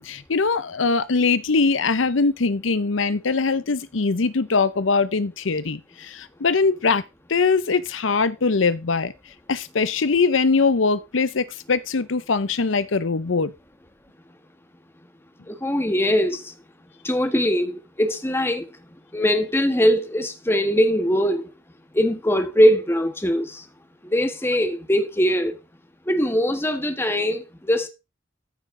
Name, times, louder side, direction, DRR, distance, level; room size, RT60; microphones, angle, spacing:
voice 1, 0.0-7.0 7.3-9.1 9.5-13.5, left 4 dB, 85° left, 0.7 m, -22 dB
voice 2, 15.5-16.4 17.0-18.7 19.1-21.5 21.9-23.6 24.0-25.6 26.1-27.9, equal, 10° left, 1.6 m, -21 dB
14.5 x 6.2 x 3.8 m
head